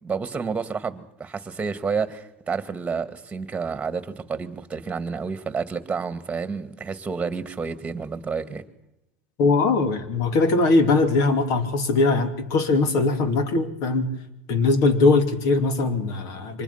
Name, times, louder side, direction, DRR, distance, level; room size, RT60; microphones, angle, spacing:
voice 1, 0.0-8.6, right 5 dB, 15° right, 12 dB, 2.2 m, -30 dB
voice 2, 9.4-14.2 14.5-16.6, left 3 dB, 55° left, 10 dB, 2.9 m, -21 dB
24.5 x 20.0 x 5.9 m, 0.88 s
hypercardioid pair, 100°, 7 cm